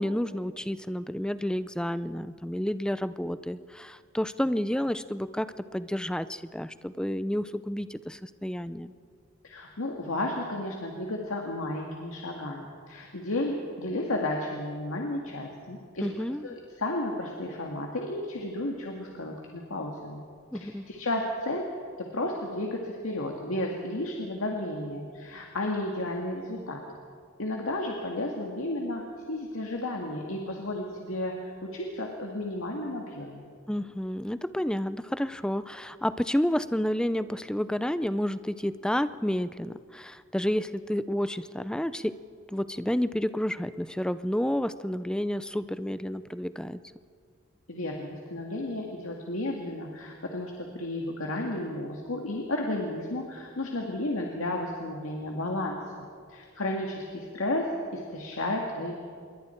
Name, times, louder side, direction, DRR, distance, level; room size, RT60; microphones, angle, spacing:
voice 1, 0.0-8.9 16.0-16.5 20.5-20.9 33.7-42.2 42.5-46.8, equal, 5° left, 13 dB, 0.5 m, -30 dB
voice 2, 9.4-16.1 16.4-20.2 20.5-21.7 22.0-26.8 27.4-33.5 47.7-58.9, left 1 dB, 85° left, 0 dB, 2.0 m, -33 dB
27.0 x 22.0 x 4.5 m, 2.1 s
head